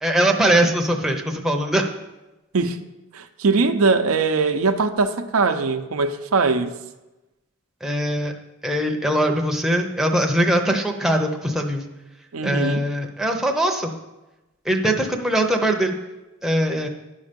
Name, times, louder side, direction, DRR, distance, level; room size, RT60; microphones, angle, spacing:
voice 1, 0.0-1.9 7.8-8.3 8.6-11.9 12.4-13.9 14.6-15.9 16.4-16.9, right 1 dB, ahead, 2 dB, 0.7 m, -21 dB
voice 2, 3.1-6.7 12.3-12.8, right 4 dB, 90° right, 8 dB, 0.6 m, -21 dB
10.5 x 5.5 x 5.1 m, 1.0 s
head